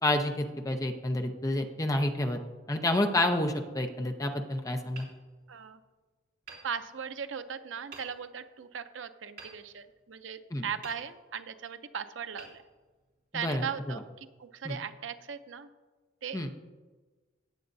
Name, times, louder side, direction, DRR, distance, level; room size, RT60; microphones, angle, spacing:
voice 1, 0.0-2.4 2.7-5.1 10.5-10.6 13.3-13.7 14.6-14.8 16.3-16.5, left 1 dB, 15° left, 5 dB, 0.7 m, -29 dB
Hammer, 4.9-5.9 6.4-7.4 7.9-8.5 9.4-10.3 10.8-11.5 12.3-13.3, right 4 dB, 55° right, 3.6 m, -52 dB
voice 2, 5.5-5.8 6.6-12.6 13.3-15.7 16.2-16.5, right 7 dB, 75° right, 10 dB, 0.6 m, -38 dB
18.5 x 7.7 x 2.7 m, 1.3 s
head